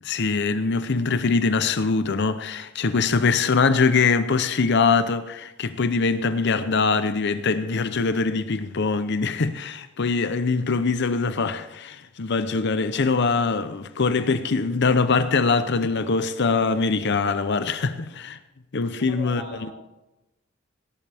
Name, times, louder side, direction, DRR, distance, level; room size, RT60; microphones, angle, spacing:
voice 1, 0.0-18.4 18.7-19.4, left 4 dB, 60° left, 0.7 m, -23 dB
voice 2, 18.8-19.7, right 1 dB, 30° right, 5.9 m, -40 dB
18.0 x 11.5 x 3.5 m
head